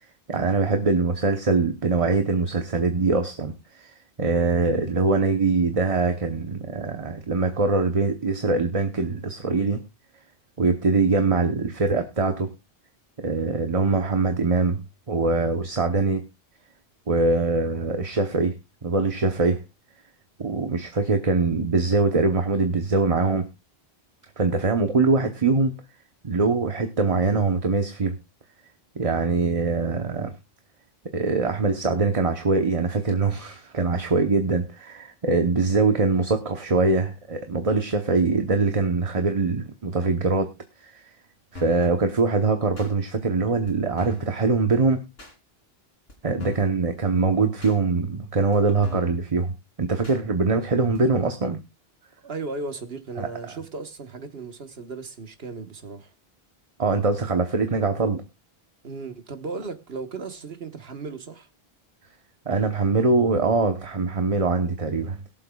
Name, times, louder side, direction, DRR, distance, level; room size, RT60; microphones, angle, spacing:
voice 1, 0.3-3.9 4.2-9.8 10.6-12.5 13.2-14.8 15.1-16.2 17.1-18.5 18.8-19.6 20.4-23.5 24.4-25.7 26.2-28.1 28.9-30.3 31.1-40.5 40.8-40.9 41.5-45.0 46.2-49.5 49.8-51.6 53.2-53.3 56.8-58.2 62.5-65.2, right 3 dB, 35° right, 1.0 m, -23 dB
sound 1, 41.6-41.9 42.8-42.9 43.7-43.8 44.0-44.3 45.2-45.4 46.1-46.2 46.4-46.8 47.6-47.8 48.5-48.6 48.8-49.2 50.0-50.2 50.9-51.0, left 3 dB, 75° left, 2.9 m, -40 dB
voice 2, 52.2-56.1 58.8-61.5, right 3 dB, 75° right, 1.5 m, -36 dB
21.5 x 7.6 x 2.3 m
omnidirectional pair, 1.0 m